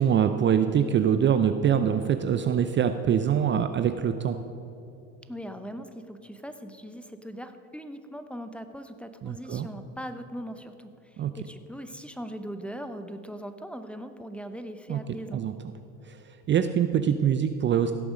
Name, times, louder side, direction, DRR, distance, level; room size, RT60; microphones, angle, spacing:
voice 1, 0.0-4.4 9.2-9.7 11.2-11.3 14.9-15.0 15.3-15.5 16.1-17.9, right 8 dB, 30° right, 9 dB, 0.5 m, -24 dB
voice 2, 5.3-15.4, equal, 5° left, 9 dB, 0.8 m, -40 dB
16.5 x 6.9 x 5.1 m, 3.0 s
hypercardioid pair, 85°, 36 cm